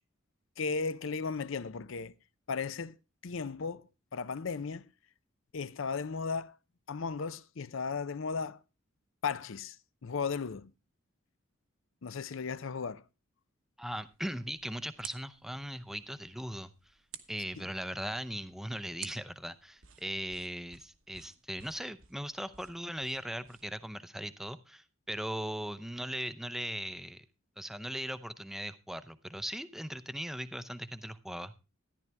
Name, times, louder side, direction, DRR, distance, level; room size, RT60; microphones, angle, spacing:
voice 1, 0.6-2.1 2.5-3.0 3.2-3.9 4.1-4.9 5.5-6.6 6.9-8.6 9.2-9.8 10.0-10.7 12.0-13.0 17.6-17.7, left 5 dB, 65° left, 0.6 m, -35 dB
voice 2, 13.8-16.7 17.3-27.3 27.6-31.5, equal, ahead, 0.6 m, -39 dB
sound 1, 13.9-23.9, right 9 dB, 65° right, 1.2 m, -54 dB
13.5 x 11.0 x 3.4 m
head